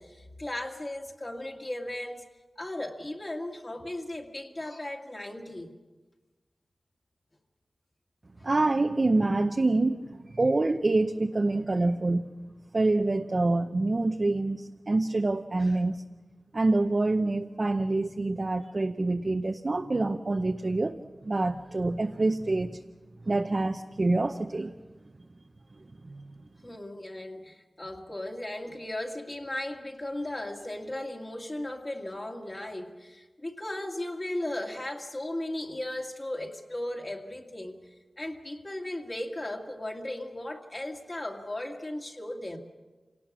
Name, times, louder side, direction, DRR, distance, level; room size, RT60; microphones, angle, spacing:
voice 1, 0.0-2.2 2.6-5.8 8.4-8.5 26.6-42.6, left 1 dB, 30° left, 1 dB, 2.1 m, -36 dB
voice 2, 8.4-10.1 10.3-12.3 12.7-16.0 16.5-21.0 21.2-22.8 23.3-24.7 26.1-26.2, right 2 dB, 40° right, 5 dB, 0.7 m, -26 dB
27.5 x 18.5 x 6.2 m, 1.3 s
wide cardioid pair, 100°, 0 cm